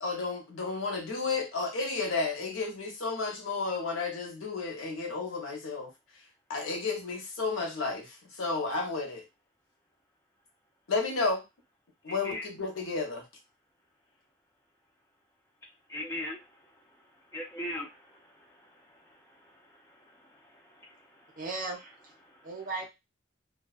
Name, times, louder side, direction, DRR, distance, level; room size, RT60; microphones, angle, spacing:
voice 1, 0.0-5.9 6.5-9.2 10.9-11.4 12.0-13.2, left 3 dB, 85° left, 2 dB, 0.8 m, -32 dB
voice 2, 12.0-12.5 15.9-21.4 22.2-22.5, left 1 dB, 15° left, -1 dB, 0.6 m, -42 dB
voice 3, 21.4-22.1 22.4-22.9, right 3 dB, 45° right, 0 dB, 0.8 m, -36 dB
2.4 x 2.3 x 2.3 m, 0.23 s
head